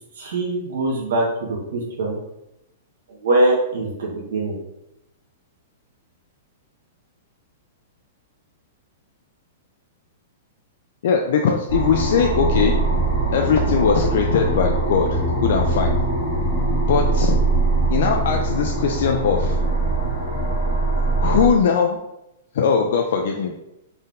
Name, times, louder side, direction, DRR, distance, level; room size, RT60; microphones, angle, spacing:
voice 1, 0.2-2.2 3.1-4.6, right 2 dB, 70° right, -4 dB, 1.2 m, -22 dB
voice 2, 11.0-12.8 13.3-15.9 16.9-17.4 17.9-19.6 21.2-22.0 22.5-23.6, left 6 dB, 55° left, 2 dB, 0.3 m, -20 dB
sound 1, 11.7-21.5, right 2 dB, 25° left, 0.9 m, -21 dB
4.2 x 3.6 x 2.5 m, 0.88 s
supercardioid pair, 180°, 0 cm